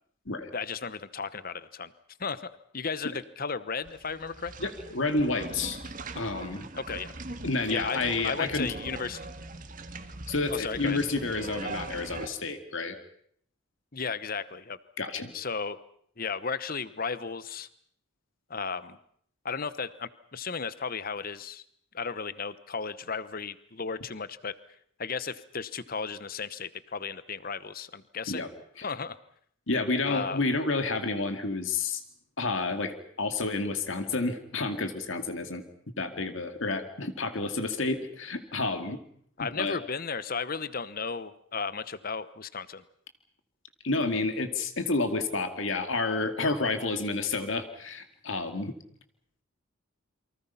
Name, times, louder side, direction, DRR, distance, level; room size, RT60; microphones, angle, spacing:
voice 1, 0.5-1.9 2.2-4.5 6.7-7.1 7.7-9.3 10.5-11.0 13.9-14.8 15.3-15.8 16.2-17.7 18.5-19.0 19.4-21.6 21.9-24.5 25.0-28.4 28.8-29.2 30.0-30.4 39.4-42.8, left 5 dB, 40° left, 15 dB, 1.0 m, -34 dB
sound 1, 3.8-12.3, right 3 dB, 40° right, 1.8 m, -41 dB
voice 2, 4.6-5.8 6.1-6.7 7.4-8.7 10.3-13.0 15.0-15.3 28.3-28.5 28.8-28.9 29.7-32.0 32.4-35.6 36.0-39.0 39.4-39.8 43.8-48.7, left 3 dB, 60° left, 7 dB, 2.2 m, -30 dB
28.5 x 24.0 x 5.7 m, 0.64 s
head